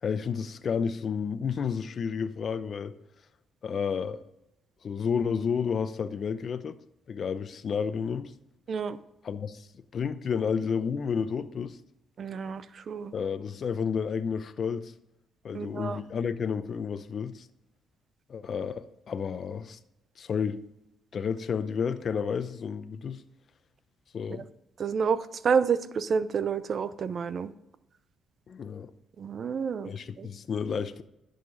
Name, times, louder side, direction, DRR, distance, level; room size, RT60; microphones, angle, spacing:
voice 1, 0.0-2.9 3.6-4.2 4.8-6.8 7.1-8.3 9.2-9.7 9.9-11.8 13.1-14.9 15.4-17.5 18.3-19.8 20.2-20.6 21.1-23.2 24.1-24.5 28.5-28.9 29.9-31.0, left 6 dB, 50° left, 0.6 m, -31 dB
voice 2, 8.7-9.0 12.2-13.1 15.5-16.0 24.8-25.2 25.4-27.5 29.2-29.9 30.2-30.3, right 6 dB, 50° right, 0.6 m, -29 dB
11.0 x 6.6 x 3.9 m
cardioid pair, 90°, 0 cm